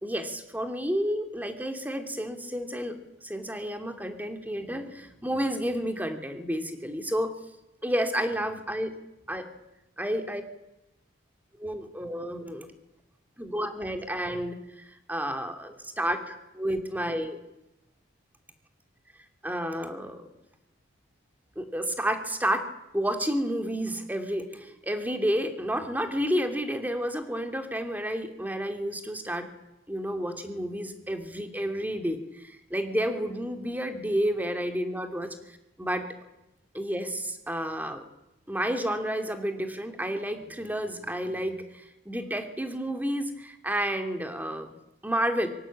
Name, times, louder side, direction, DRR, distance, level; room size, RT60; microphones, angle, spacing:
voice 1, 0.0-3.0 3.2-7.3 7.8-9.0 9.3-9.5 10.0-10.4 11.6-12.7 13.4-17.4 19.4-20.3 21.5-22.7 22.9-29.5 29.9-35.3 35.8-36.1 36.7-38.0 38.5-44.7 45.0-45.5, equal, 10° right, 6 dB, 2.9 m, -30 dB
25.5 x 24.5 x 8.7 m, 0.90 s
head